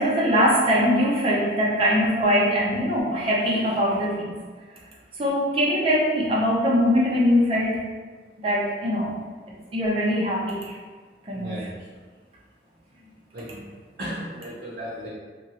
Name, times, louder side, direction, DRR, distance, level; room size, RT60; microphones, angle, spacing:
voice 1, 0.0-4.3 5.2-7.8 8.4-9.2 9.7-10.8 11.3-11.7, equal, 30° right, -5 dB, 0.6 m, -22 dB
voice 2, 11.3-11.7 13.3-13.6 14.0-15.1, equal, 65° right, -9 dB, 0.8 m, -35 dB
3.0 x 2.5 x 2.8 m, 1.5 s
head